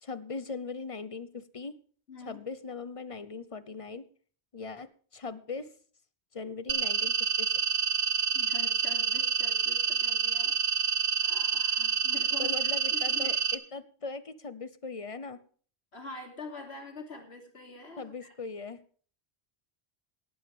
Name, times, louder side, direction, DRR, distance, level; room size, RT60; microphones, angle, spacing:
voice 1, 0.0-1.8 2.3-4.0 4.5-5.7 6.3-7.5 12.4-15.4 18.0-18.8, left 4 dB, 35° left, 15 dB, 0.8 m, -40 dB
voice 2, 2.1-2.4 8.3-13.4 15.9-18.3, left 3 dB, 75° left, 3 dB, 3.1 m, -46 dB
sound 1, 6.7-13.5, right 6 dB, 45° right, 1.0 m, -28 dB
18.0 x 11.0 x 3.4 m, 0.43 s
omnidirectional pair, 1.1 m